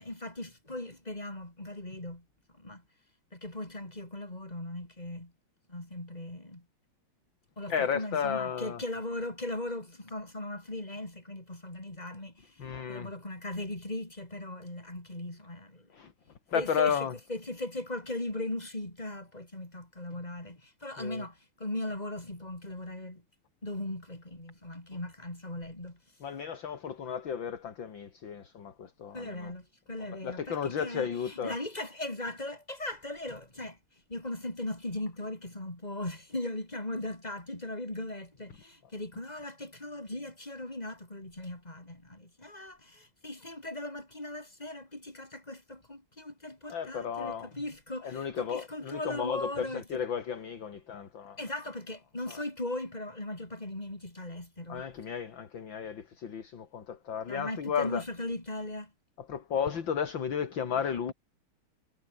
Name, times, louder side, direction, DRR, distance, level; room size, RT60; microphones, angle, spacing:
voice 1, 0.0-2.2 2.6-2.8 3.3-5.3 5.7-6.6 7.6-12.5 12.9-15.9 16.5-23.2 23.6-26.0 29.1-33.8 34.1-50.0 51.4-54.9 57.3-58.9, left 1 dB, 15° left, 5.4 m, -38 dB
voice 2, 7.7-8.8 12.6-13.1 15.9-16.1 16.5-17.1 21.0-21.3 26.2-29.5 30.1-31.6 46.7-47.5 48.0-51.4 52.3-52.4 54.7-58.0 59.2-61.1, left 7 dB, 60° left, 2.8 m, -33 dB
omnidirectional pair, 2.4 m